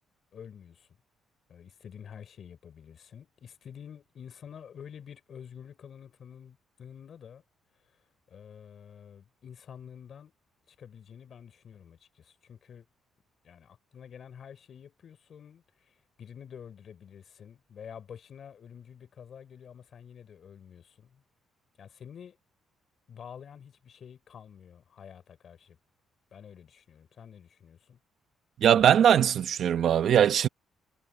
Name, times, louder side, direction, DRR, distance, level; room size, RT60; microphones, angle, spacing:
voice 1, 0.3-0.9 1.5-7.4 8.3-10.3 10.7-12.9 13.4-21.2 21.8-22.4 23.1-25.8 26.3-28.0, left 8 dB, 50° left, 4.3 m, -48 dB
voice 2, 28.6-30.5, right 9 dB, 60° right, 0.9 m, -21 dB
cardioid pair, 110°, 0 cm